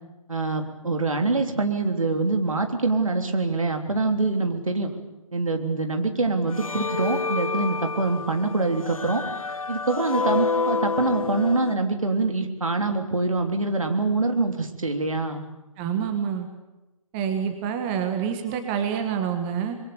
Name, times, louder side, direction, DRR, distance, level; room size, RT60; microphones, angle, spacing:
voice 1, 0.3-4.9 5.3-9.2 9.7-15.5, right 3 dB, 70° right, 5 dB, 3.3 m, -25 dB
sound 1, 6.5-11.8, left 4 dB, 70° left, 0.8 m, -29 dB
voice 2, 15.8-16.5 17.1-19.8, right 8 dB, 15° right, 6 dB, 1.5 m, -27 dB
26.5 x 22.0 x 7.1 m, 1.0 s
figure-of-eight pair, 140°, 18 cm